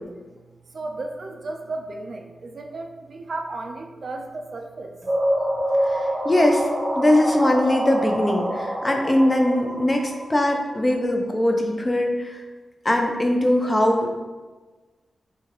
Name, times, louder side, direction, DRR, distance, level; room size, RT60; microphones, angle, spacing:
voice 1, 0.7-5.0, right 2 dB, 55° right, 3 dB, 0.3 m, -34 dB
sound 1, 5.1-10.8, equal, 35° right, 1.0 m, -26 dB
voice 2, 6.2-6.6 7.0-12.4 12.8-14.2, left 1 dB, 20° left, 2 dB, 0.4 m, -21 dB
4.7 x 2.3 x 2.9 m, 1.3 s
wide cardioid pair, 120°, 0 cm